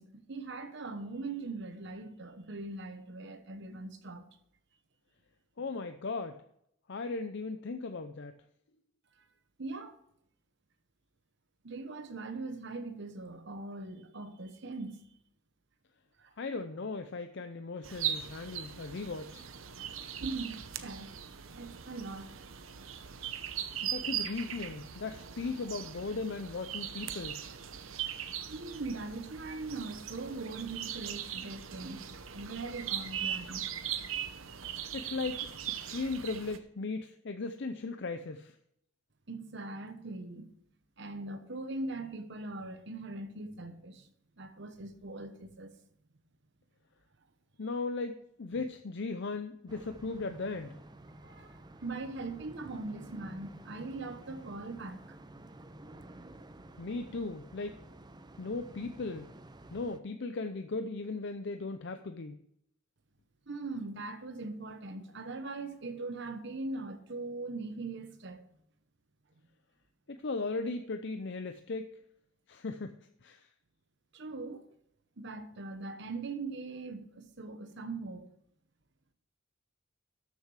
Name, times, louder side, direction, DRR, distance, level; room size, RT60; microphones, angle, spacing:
voice 1, 0.0-4.3 9.6-10.0 11.6-15.1 16.2-16.3 20.2-21.1 21.5-22.3 28.5-32.1 32.3-33.7 39.3-40.5 41.0-44.1 44.4-45.8 48.5-48.7 51.1-55.0 63.5-68.5 74.1-74.7 75.2-78.3, right 3 dB, 60° right, 1.1 m, -41 dB
voice 2, 5.6-6.4 6.9-8.4 16.4-19.5 23.8-27.4 34.9-38.5 47.6-50.8 56.8-57.8 58.4-59.3 59.7-62.4 70.1-72.0 72.5-72.9 73.2-73.5, left 3 dB, 60° left, 0.6 m, -37 dB
sound 1, 17.8-36.6, right 9 dB, 80° right, 0.8 m, -40 dB
sound 2, 49.7-60.0, right 1 dB, 20° right, 0.6 m, -51 dB
13.0 x 7.0 x 4.8 m
head